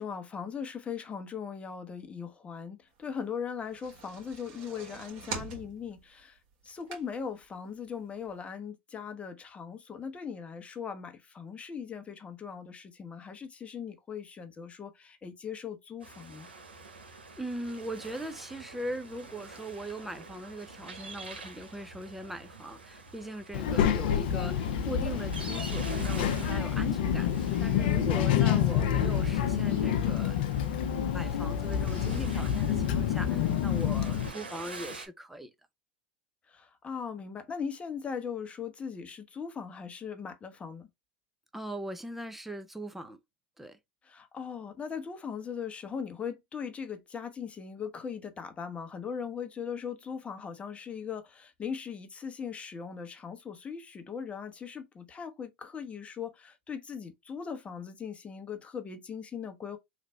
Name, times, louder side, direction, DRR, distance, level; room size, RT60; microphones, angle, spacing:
voice 1, 0.0-6.4 6.6-16.5 23.6-24.6 33.3-33.7 36.5-40.9 44.0-59.8, left 6 dB, 25° left, 0.9 m, -39 dB
sound 1, 3.5-7.4 7.9-8.0 8.3-8.4, right 4 dB, 55° right, 1.5 m, -43 dB
sound 2, 16.0-35.1, right 3 dB, 90° right, 0.9 m, -47 dB
voice 2, 17.4-30.4 30.7-35.5 41.5-43.2 43.6-43.8, right 1 dB, 5° right, 0.6 m, -40 dB
Child speech kid speaking, 23.5-34.3, left 9 dB, 65° left, 0.6 m, -28 dB
3.3 x 2.5 x 4.3 m
hypercardioid pair, 90°, 5 cm